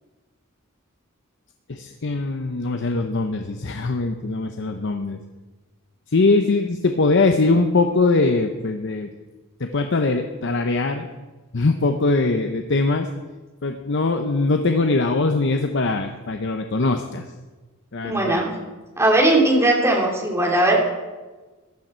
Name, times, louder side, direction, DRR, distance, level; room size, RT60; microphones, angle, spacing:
voice 1, 1.7-5.2 6.1-9.1 9.6-11.1 11.5-13.1 13.6-17.2 17.9-18.4, left 3 dB, 60° left, 5 dB, 0.8 m, -21 dB
voice 2, 18.0-18.6 19.0-20.8, right 1 dB, 15° right, -2 dB, 2.9 m, -18 dB
15.5 x 11.5 x 4.4 m, 1.2 s
head